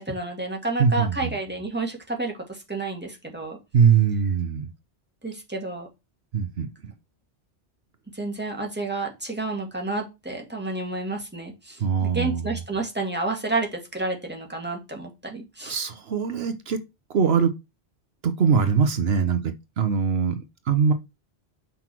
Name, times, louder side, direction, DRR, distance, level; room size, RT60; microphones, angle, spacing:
voice 1, 0.0-3.6 5.2-5.9 8.1-15.8, right 2 dB, 10° right, 2.0 m, -30 dB
voice 2, 0.8-1.3 3.7-4.7 6.3-6.9 11.8-12.6 15.7-16.8 17.1-17.5 18.2-20.9, right 6 dB, 75° right, 1.1 m, -22 dB
6.0 x 5.5 x 4.5 m
omnidirectional pair, 1.1 m